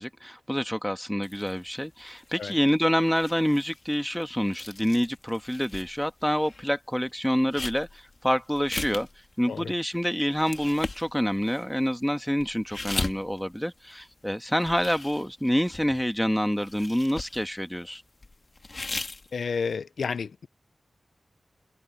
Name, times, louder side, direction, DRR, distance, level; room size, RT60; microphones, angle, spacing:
voice 1, 0.0-9.1 9.4-18.0, equal, 5° left, 1.6 m, -27 dB
sound 1, 1.2-6.6 6.9-14.3 14.5-16.3 16.6-17.8 18.2-19.7, left 3 dB, 45° left, 3.1 m, -39 dB
voice 2, 19.3-20.5, left 5 dB, 90° left, 0.6 m, -31 dB
cardioid pair, 55°, 0 cm